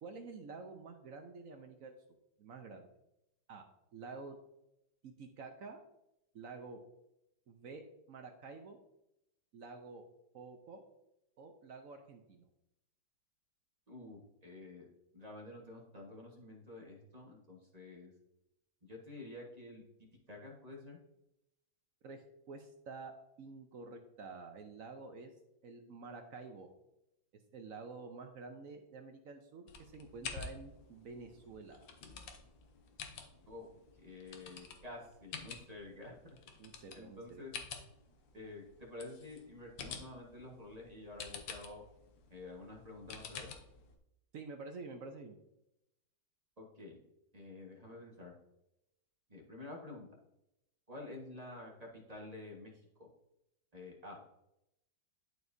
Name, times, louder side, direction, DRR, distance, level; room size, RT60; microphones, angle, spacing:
voice 1, 0.0-1.9 2.4-2.9 3.5-4.4 5.0-5.8 6.3-6.8 7.5-8.8 9.5-10.0 10.3-10.8 11.4-12.5 22.0-25.3 25.6-26.7 27.5-31.9 36.6-37.4 44.3-45.4, right 4 dB, 60° right, 5 dB, 0.9 m, -49 dB
voice 2, 13.9-14.9 15.1-18.1 18.9-21.0 33.5-33.7 34.0-36.4 36.9-37.5 38.3-41.8 42.3-43.5 46.6-47.0 47.3-48.3 49.3-50.1 50.9-52.7 53.0-53.1 53.7-54.2, left 2 dB, 25° right, -1 dB, 1.3 m, -49 dB
sound 1, 29.7-44.0, left 6 dB, 85° left, 1.6 m, -50 dB
11.5 x 4.6 x 2.7 m, 0.85 s
omnidirectional pair, 2.0 m